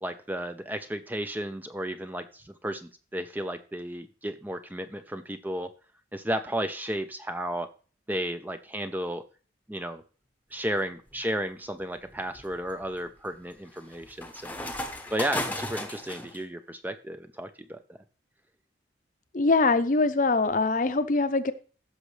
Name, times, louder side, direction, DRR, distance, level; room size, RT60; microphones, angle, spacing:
voice 1, 0.0-5.7 6.1-7.7 8.1-9.2 9.7-10.0 10.5-14.6 15.1-17.8, right 1 dB, 10° right, 9 dB, 0.4 m, -33 dB
sound 1, 10.8-11.2 11.8-16.4, left 1 dB, 10° left, 0.9 m, -36 dB
voice 2, 19.3-21.5, left 3 dB, 45° left, 12 dB, 0.6 m, -23 dB
15.0 x 6.4 x 3.2 m, 0.38 s
head